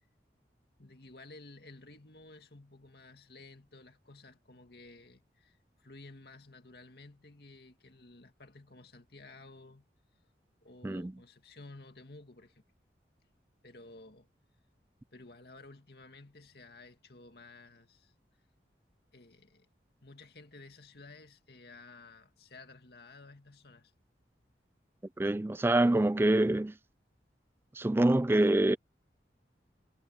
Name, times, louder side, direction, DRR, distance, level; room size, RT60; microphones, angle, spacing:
voice 1, 0.8-9.9 10.6-12.6 13.6-14.3 15.1-18.1 19.1-19.7 20.0-23.9, left 2 dB, 60° left, 2.4 m, -53 dB
voice 2, 25.2-26.7 27.8-28.8, right 1 dB, 15° right, 0.3 m, -25 dB
head